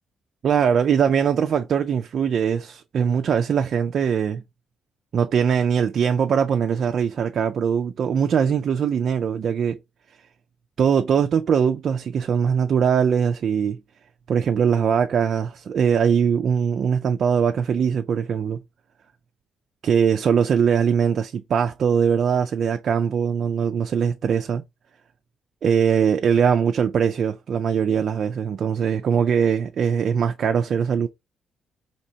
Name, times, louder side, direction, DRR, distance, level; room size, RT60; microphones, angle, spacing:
voice 1, 0.4-4.4 5.1-9.8 10.8-13.8 14.3-18.6 19.8-24.6 25.6-31.1, right 7 dB, 60° right, 0.3 m, -21 dB
4.4 x 2.8 x 2.7 m
cardioid pair, 90°, 0 cm